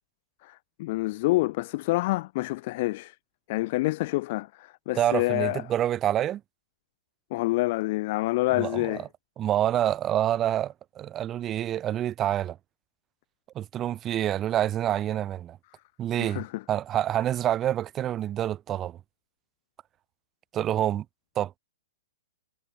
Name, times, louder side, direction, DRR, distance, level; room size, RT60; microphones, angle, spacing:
voice 1, 0.4-3.1 3.5-5.6 7.3-9.0 16.2-16.6, left 20 dB, 40° left, 0.5 m, -27 dB
voice 2, 4.9-6.4 8.5-9.0 9.4-12.6 13.5-15.6 16.0-16.4 16.7-19.0 20.5-21.0 21.3-21.6, right 11 dB, 20° right, 3.0 m, -27 dB
figure-of-eight pair, 110°, 0 cm